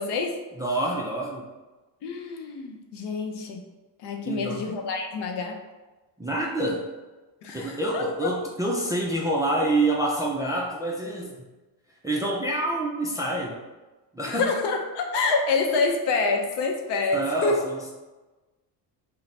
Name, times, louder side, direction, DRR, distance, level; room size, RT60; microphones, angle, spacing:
voice 1, 0.0-0.4 2.0-3.6 4.0-5.6 7.4-8.3 14.3-17.6, left 4 dB, 55° left, 2 dB, 0.7 m, -27 dB
voice 2, 0.6-1.5 4.2-4.7 6.2-6.9 7.5-11.5 12.0-13.6 14.1-14.5 17.1-17.9, right 1 dB, 10° right, -3 dB, 0.4 m, -27 dB
3.0 x 2.2 x 4.1 m, 1.2 s
hypercardioid pair, 70°, 49 cm